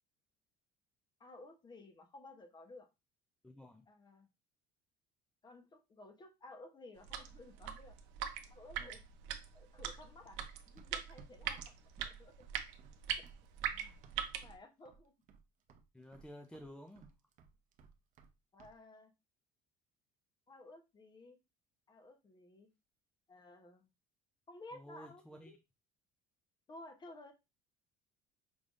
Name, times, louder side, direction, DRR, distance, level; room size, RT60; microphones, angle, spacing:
voice 1, 1.2-2.9 3.9-4.3 5.4-8.0 8.5-9.0 9.5-10.4 10.7-11.7 12.0-12.5 14.4-15.1 18.5-19.1 20.5-21.4 21.9-22.7 23.3-23.9 24.5-25.6 26.7-27.3, left 2 dB, 25° left, 6 dB, 0.8 m, -55 dB
voice 2, 3.4-3.8 8.8-8.9 11.4-11.6 13.7-14.0 15.9-17.1 24.7-25.5, equal, 5° left, 3 dB, 0.4 m, -53 dB
sound 1, 7.0-14.5, right 9 dB, 85° right, 0.7 m, -42 dB
Run, 10.4-14.6 14.9-15.4 15.7-18.3 18.6-18.8, right 5 dB, 45° right, 0.6 m, -60 dB
5.4 x 3.3 x 2.5 m, 0.25 s
cardioid pair, 140°, 19 cm